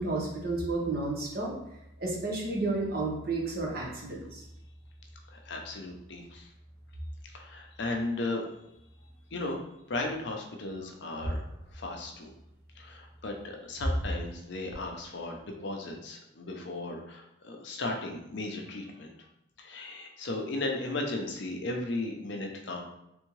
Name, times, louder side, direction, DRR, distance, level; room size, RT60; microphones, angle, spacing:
voice 1, 0.0-1.5 2.0-4.4, right 2 dB, 45° right, -2 dB, 1.1 m, -31 dB
voice 2, 5.3-6.5 7.3-8.5 9.3-9.6 9.9-11.4 11.7-12.3 12.8-19.1 19.6-22.8, left 2 dB, 55° left, 2 dB, 0.6 m, -36 dB
3.5 x 3.5 x 3.2 m, 0.84 s
head